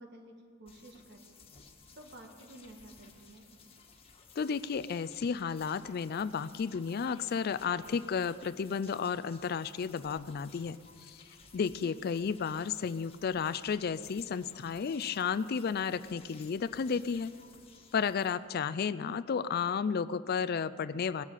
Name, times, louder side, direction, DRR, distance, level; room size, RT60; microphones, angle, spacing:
voice 1, 0.0-1.3 1.9-3.5 11.7-12.0, right 1 dB, 55° right, 2 dB, 1.9 m, -52 dB
sound 1, 0.7-18.4, left 4 dB, 30° left, 1.6 m, -57 dB
voice 2, 4.4-11.2 11.5-17.3 17.9-21.2, left 6 dB, 50° left, 14 dB, 0.4 m, -33 dB
19.5 x 7.3 x 8.7 m, 2.1 s
head